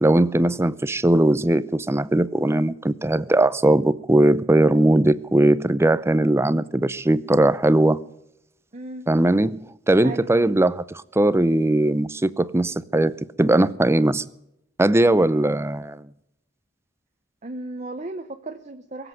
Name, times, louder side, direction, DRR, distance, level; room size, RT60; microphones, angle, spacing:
voice 1, 0.0-8.0 9.1-9.6 9.9-10.8 11.2-14.2 14.8-16.0, right 1 dB, 15° right, 0.5 m, -19 dB
voice 2, 8.7-9.1 10.0-10.4 17.4-19.1, right 2 dB, 40° right, 1.0 m, -35 dB
22.5 x 8.0 x 7.7 m
head